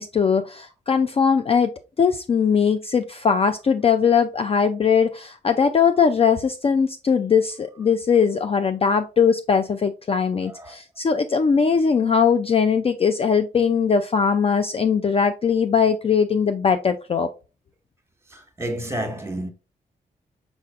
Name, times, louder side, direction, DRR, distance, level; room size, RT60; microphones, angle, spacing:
voice 1, 0.0-1.7 2.0-17.3, left 6 dB, 35° left, 0.4 m, -20 dB
voice 2, 10.4-10.8 18.3-19.5, right 1 dB, 15° right, 1.2 m, -30 dB
4.4 x 4.2 x 2.4 m
supercardioid pair, 50°, 18 cm